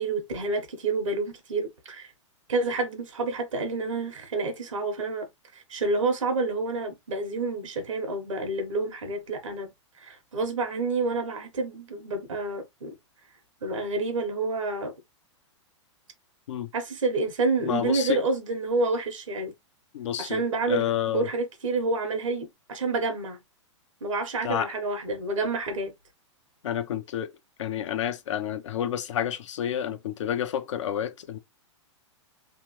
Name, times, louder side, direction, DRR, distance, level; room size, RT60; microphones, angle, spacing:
voice 1, 0.0-2.1 2.5-5.3 5.5-9.7 10.0-12.9 13.6-14.9 16.7-19.5 20.2-23.4 24.0-25.9, right 3 dB, 90° right, 1.2 m, -28 dB
voice 2, 17.6-18.2 19.9-20.4 20.7-21.3 24.4-24.7 26.6-27.3 27.6-31.4, left 10 dB, 75° left, 0.7 m, -29 dB
3.3 x 2.4 x 3.0 m
hypercardioid pair, 125°, 16 cm